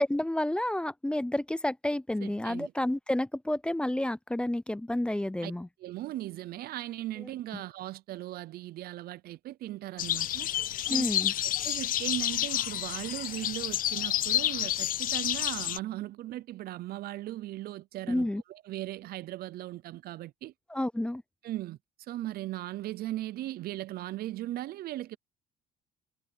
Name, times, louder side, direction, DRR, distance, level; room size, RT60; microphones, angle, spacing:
voice 1, 0.0-5.7 7.2-7.3 10.9-11.3 18.1-18.4 20.7-21.2, left 1 dB, 5° left, 0.4 m, -30 dB
voice 2, 2.2-2.7 5.4-5.5 5.8-10.5 10.9-11.1 11.4-20.5 21.4-25.2, right 15 dB, 65° right, 0.6 m, -38 dB
sound 1, 10.0-15.8, left 12 dB, 55° left, 0.6 m, -30 dB
cardioid pair, 110°, 17 cm